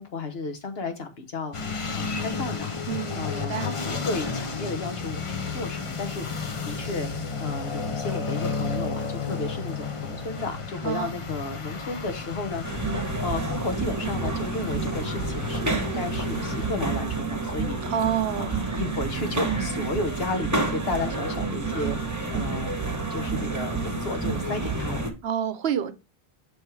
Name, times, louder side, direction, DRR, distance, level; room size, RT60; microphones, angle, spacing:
voice 1, 0.0-1.6 1.9-2.7 3.1-7.1 7.4-12.7 13.2-17.9 18.4-22.7 23.1-25.1, left 3 dB, 75° left, 1.4 m, -33 dB
sound 1, 1.5-16.7, left 5 dB, 35° left, 0.7 m, -32 dB
voice 2, 2.9-3.7 10.8-11.1 17.8-18.6 25.2-25.9, right 8 dB, 75° right, 0.9 m, -28 dB
sound 2, 12.6-25.1, right 3 dB, 20° right, 1.0 m, -29 dB
6.3 x 3.4 x 4.4 m
omnidirectional pair, 1.1 m